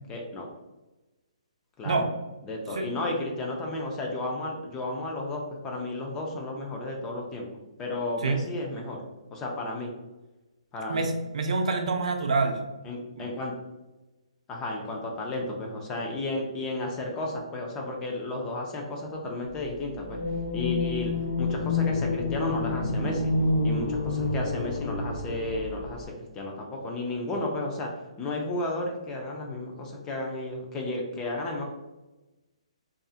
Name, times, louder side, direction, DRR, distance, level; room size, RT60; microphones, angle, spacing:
voice 1, 0.1-0.5 1.8-2.0 2.4-7.5 7.8-9.0 9.3-9.9 10.7-11.1 12.8-13.5 14.5-20.2 20.5-23.3 23.6-27.9 28.2-31.7, left 2 dB, 15° left, 0 dB, 0.3 m, -33 dB
voice 2, 10.9-12.6 13.2-13.3, right 3 dB, 70° right, 4 dB, 0.4 m, -27 dB
sound 1, 20.0-26.0, left 3 dB, 90° left, 0.6 m, -28 dB
2.6 x 2.4 x 2.3 m, 1.1 s
hypercardioid pair, 160°, 4 cm